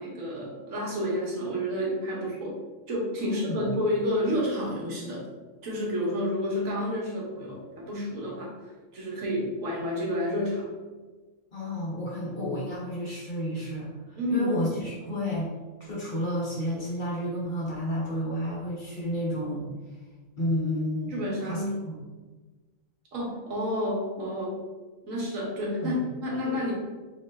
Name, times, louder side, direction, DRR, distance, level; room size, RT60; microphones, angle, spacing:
voice 1, 0.0-2.6 2.9-5.3 5.6-8.5 8.9-10.7 14.2-14.9 21.1-21.8 23.1-24.6 25.0-26.7, equal, 75° right, -3 dB, 1.3 m, -30 dB
voice 2, 3.2-3.7 11.5-15.5 15.8-19.7 20.4-21.1 21.4-21.9 25.8-26.0, equal, 40° left, -6 dB, 1.0 m, -31 dB
3.1 x 3.0 x 3.3 m, 1.3 s
omnidirectional pair, 1.4 m